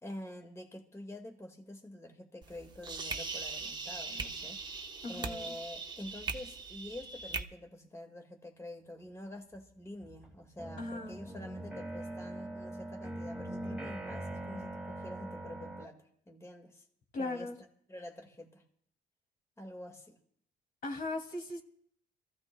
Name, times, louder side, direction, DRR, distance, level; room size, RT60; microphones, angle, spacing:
voice 1, 0.0-4.8 5.1-16.9 17.2-17.5 17.9-18.6 19.6-20.2, left 1 dB, 15° left, 3 dB, 1.8 m, -47 dB
sound 1, 2.4-7.4, right 4 dB, 25° right, 1.0 m, -40 dB
voice 2, 5.0-5.5 10.8-11.2 17.1-17.5 20.8-21.6, left 2 dB, 60° left, 2 dB, 2.5 m, -38 dB
sound 2, 9.5-9.6 10.0-15.8, right 1 dB, 5° right, 1.5 m, -42 dB
27.0 x 15.0 x 2.2 m, 0.65 s
cardioid pair, 110°, 17 cm